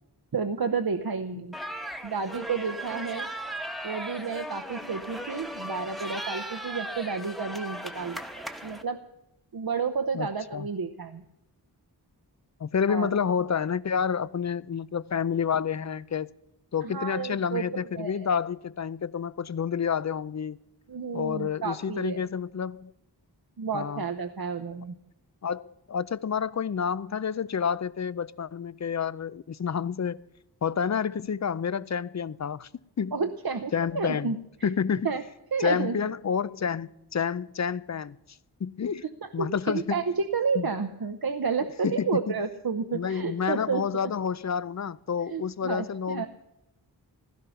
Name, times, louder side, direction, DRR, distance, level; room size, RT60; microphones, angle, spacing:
voice 1, 0.3-1.6 2.0-3.3 3.8-9.0 9.5-11.2 12.9-13.1 16.8-18.3 20.9-22.3 23.6-24.9 33.1-34.7 35.0-35.2 35.5-36.0 39.2-44.1 45.3-46.3, right 5 dB, 60° right, 0.9 m, -31 dB
sound 1, 1.5-8.8, right 1 dB, ahead, 1.2 m, -37 dB
voice 2, 10.1-10.7 12.6-16.3 16.7-20.6 21.1-22.9 23.7-24.0 25.4-30.2 30.6-32.7 33.0-33.2 33.7-34.3 34.6-35.1 35.6-38.2 38.6-39.0 39.3-40.0 40.6-40.7 41.8-42.3 42.9-46.3, left 7 dB, 45° left, 0.5 m, -29 dB
16.0 x 12.5 x 5.7 m
wide cardioid pair, 55°, 41 cm